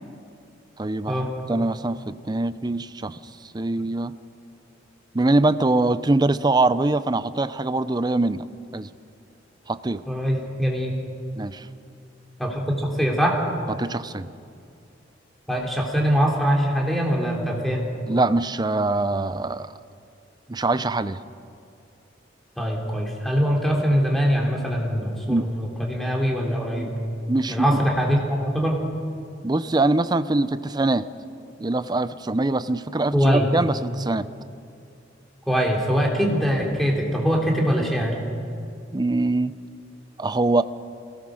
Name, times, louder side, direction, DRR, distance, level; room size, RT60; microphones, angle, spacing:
voice 1, 0.8-4.2 5.1-8.5 8.7-8.9 9.7-10.0 11.4-11.7 13.7-14.3 18.1-19.7 20.5-21.2 25.3-25.5 26.8-26.9 27.3-27.8 29.4-31.1 31.6-34.3 38.9-39.5 40.2-40.6, right 2 dB, 20° right, 14 dB, 0.5 m, -23 dB
voice 2, 10.1-10.9 12.4-13.4 15.5-17.8 22.6-26.9 27.5-28.8 33.1-33.5 35.5-38.2, equal, ahead, -1 dB, 3.2 m, -22 dB
24.0 x 18.0 x 6.4 m, 2.4 s
head